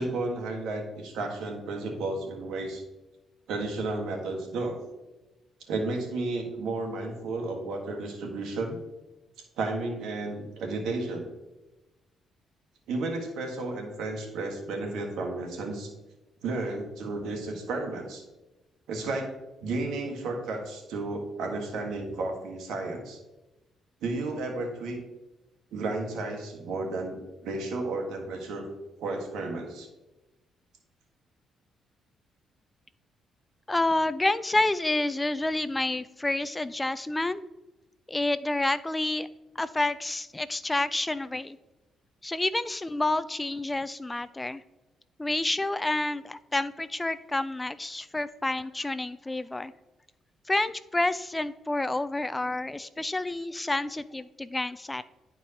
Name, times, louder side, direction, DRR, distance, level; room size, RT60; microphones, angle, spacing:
voice 1, 0.0-2.8 3.5-4.8 5.7-8.8 9.6-11.3 12.9-15.9 16.4-18.2 18.9-19.3 19.6-23.2 24.0-25.0 25.7-28.7 29.0-29.9, right 2 dB, 85° right, 2 dB, 1.4 m, -32 dB
voice 2, 33.7-37.4 38.1-39.3 39.6-41.6 42.2-44.6 45.2-49.7 50.5-55.0, left 2 dB, 15° left, 14 dB, 0.3 m, -29 dB
11.0 x 4.6 x 2.8 m, 1.0 s
cardioid pair, 90°, 0 cm